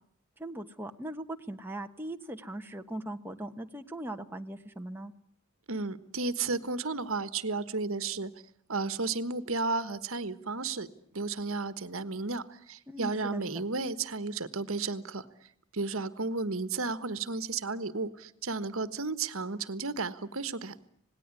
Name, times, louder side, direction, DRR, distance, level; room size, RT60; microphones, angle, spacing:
voice 1, 0.4-5.1 12.9-13.4, right 1 dB, 10° right, 4 dB, 1.2 m, -39 dB
voice 2, 5.7-8.3 8.7-10.9 11.1-15.2 15.7-20.7, right 3 dB, 65° right, 14 dB, 1.4 m, -33 dB
27.0 x 19.5 x 9.8 m, 0.67 s
head